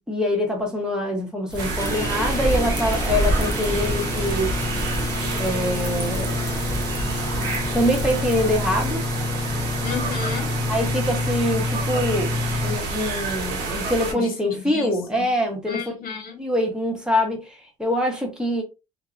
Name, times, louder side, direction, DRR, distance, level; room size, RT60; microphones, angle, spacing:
voice 1, 0.1-4.6 5.4-6.4 7.7-9.1 10.7-15.8 16.4-18.6, equal, 5° right, 1.1 m, -24 dB
sound 1, 1.5-8.9, right 1 dB, 25° right, 0.7 m, -29 dB
sound 2, 1.6-14.1, right 3 dB, 85° right, 1.0 m, -29 dB
sound 3, 1.8-12.8, left 3 dB, 20° left, 0.3 m, -29 dB
voice 2, 9.8-10.5 14.0-15.3 15.7-16.4, left 6 dB, 60° left, 1.3 m, -33 dB
2.7 x 2.3 x 2.5 m
cardioid pair, 110°, 17 cm